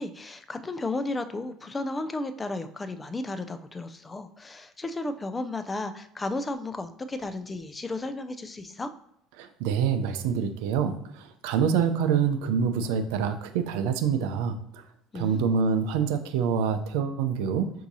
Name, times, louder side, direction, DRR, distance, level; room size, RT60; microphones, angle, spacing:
voice 1, 0.0-8.9 15.1-15.4, left 2 dB, 20° left, 9 dB, 0.4 m, -33 dB
voice 2, 9.4-14.8 15.1-17.7, right 7 dB, 80° right, 9 dB, 0.5 m, -26 dB
5.8 x 2.7 x 2.7 m, 0.76 s
supercardioid pair, 95°, 0 cm